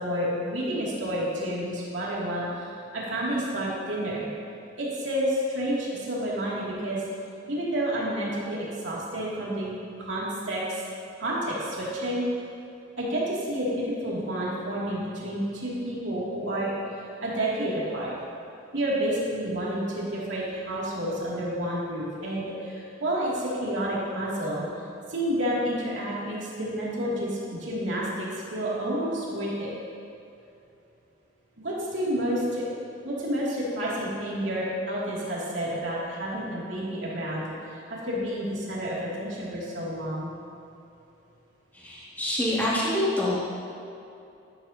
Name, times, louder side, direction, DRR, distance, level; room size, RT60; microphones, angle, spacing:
voice 1, 0.0-4.3 4.8-7.0 7.5-9.7 10.0-10.8 11.2-12.2 13.0-16.7 17.2-18.2 18.7-24.6 25.1-29.7 31.6-32.6 33.0-37.4 37.7-40.3, equal, 85° right, -6 dB, 2.7 m, -30 dB
voice 2, 41.7-43.4, left 1 dB, 10° left, -9 dB, 2.4 m, -26 dB
12.5 x 11.0 x 2.9 m, 2.7 s
head